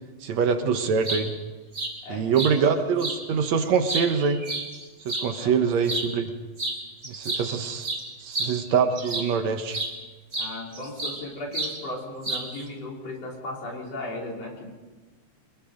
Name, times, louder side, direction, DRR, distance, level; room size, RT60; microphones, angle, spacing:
voice 1, 0.2-1.3 2.1-4.4 5.1-6.3 7.1-7.9 8.2-9.8, right 6 dB, 70° right, 7 dB, 2.4 m, -24 dB
sound 1, 1.0-1.2 1.7-1.9 2.4-2.5 3.0-3.2 3.7-5.3 5.8-6.1 6.6-6.8 7.0-9.4 9.7-9.9 10.3-11.2 11.5-11.8 12.2-12.6, right 2 dB, 20° right, 3.5 m, -30 dB
voice 2, 2.0-3.1 5.4-5.7 10.4-14.7, left 2 dB, 55° left, -1 dB, 4.9 m, -36 dB
25.0 x 21.0 x 5.2 m, 1.3 s
omnidirectional pair, 3.4 m